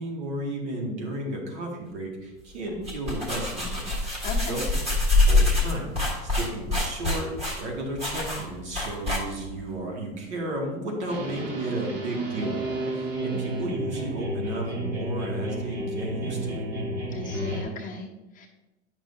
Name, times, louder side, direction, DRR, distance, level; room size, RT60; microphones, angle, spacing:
voice 1, 0.0-4.1 4.4-4.7 5.3-5.9 6.2-7.3 7.6-16.7, right 1 dB, 80° right, 0 dB, 2.1 m, -33 dB
sound 1, 2.7-9.6, left 2 dB, 20° right, 1.5 m, -25 dB
voice 2, 4.2-4.6 13.3-13.8 17.1-18.5, left 4 dB, 25° left, 0 dB, 1.0 m, -38 dB
sound 2, 11.1-17.6, right 1 dB, 55° right, 1.8 m, -31 dB
9.1 x 5.9 x 2.7 m, 1.1 s
supercardioid pair, 145°, 34 cm